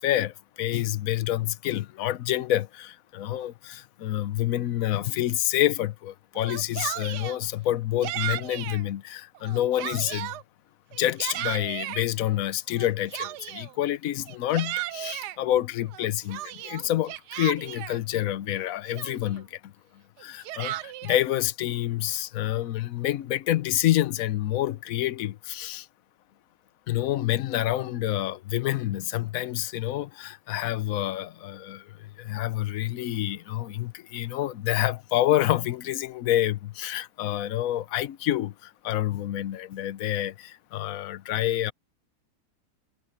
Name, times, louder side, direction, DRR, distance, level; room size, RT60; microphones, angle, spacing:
voice 1, 0.0-10.3 10.9-25.9 26.9-41.7, left 13 dB, 65° left, 1.1 m, -28 dB
Yell, 6.4-7.4 8.0-8.8 9.4-10.4 10.9-12.0 12.8-13.7 14.3-15.4 15.9-18.0 18.6-18.7 18.9-19.4 20.2-21.3, right 14 dB, 85° right, 1.2 m, -35 dB
omnidirectional pair, 1.8 m